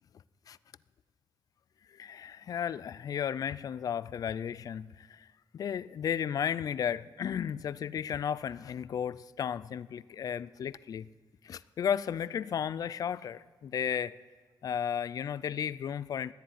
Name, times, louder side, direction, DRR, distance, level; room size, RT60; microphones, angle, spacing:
voice 1, 1.9-5.3 5.5-11.1 11.4-14.1 14.6-16.3, left 8 dB, 50° left, 18 dB, 0.4 m, -34 dB
14.0 x 10.5 x 9.5 m, 1.4 s
cardioid pair, 125°, 8 cm